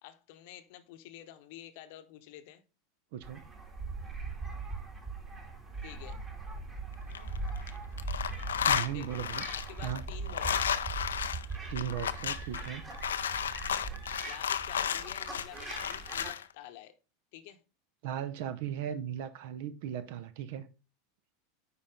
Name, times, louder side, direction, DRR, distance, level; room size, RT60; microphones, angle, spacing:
voice 1, 0.0-2.6 5.8-6.2 8.9-9.2 9.5-10.7 14.2-16.9 17.3-17.6, left 13 dB, 55° left, 0.8 m, -49 dB
voice 2, 3.1-3.4 8.6-9.4 9.8-10.0 11.7-12.8 18.0-20.7, right 10 dB, 55° right, 0.7 m, -37 dB
sound 1, 3.2-16.3, right 3 dB, 25° right, 2.1 m, -40 dB
sound 2, 6.9-7.7 8.0-16.4, left 8 dB, 70° left, 0.4 m, -33 dB
9.8 x 4.0 x 3.7 m
figure-of-eight pair, 80°, 0 cm